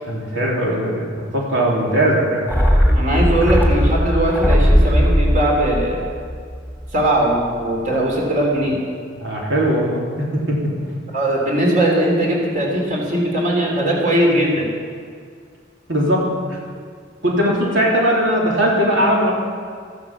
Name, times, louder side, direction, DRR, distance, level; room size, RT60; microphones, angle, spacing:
voice 1, 0.1-2.5 9.2-10.6 15.9-16.6 17.2-19.3, equal, 85° right, -3 dB, 3.4 m, -19 dB
sound 1, 2.5-7.1 7.4-7.5, equal, 10° right, 2.7 m, -17 dB
voice 2, 2.9-6.0 6.9-8.8 11.1-14.7, right 1 dB, 45° right, -2 dB, 3.7 m, -19 dB
14.5 x 12.5 x 7.4 m, 2.1 s
head